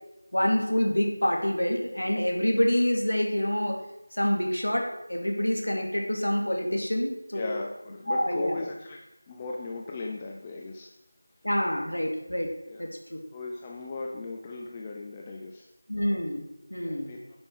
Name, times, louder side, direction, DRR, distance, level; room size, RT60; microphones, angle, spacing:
voice 1, 0.3-3.8 4.1-7.5 8.1-8.6 11.4-12.5 12.8-13.2 15.9-17.1, equal, 85° left, 1 dB, 2.7 m, -27 dB
voice 2, 7.3-11.0 12.7-12.8 13.3-15.7 16.8-17.4, left 3 dB, 15° left, 0 dB, 0.6 m, -37 dB
10.5 x 5.4 x 6.6 m, 0.90 s
figure-of-eight pair, 170°, 0 cm